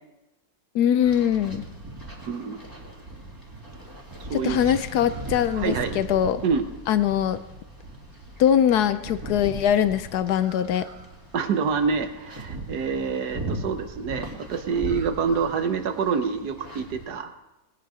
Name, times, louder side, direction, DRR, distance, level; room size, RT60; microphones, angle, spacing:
voice 1, 0.7-1.6 4.3-6.4 6.9-7.4 8.4-10.9, left 9 dB, 70° left, 13 dB, 0.9 m, -22 dB
sound 1, 1.0-17.1, right 2 dB, 10° right, 2.1 m, -39 dB
voice 2, 2.2-2.6 4.3-4.6 5.5-6.0 6.4-6.6 11.3-17.3, right 5 dB, 60° right, 8 dB, 1.3 m, -26 dB
19.5 x 9.6 x 4.9 m, 0.99 s
omnidirectional pair, 2.2 m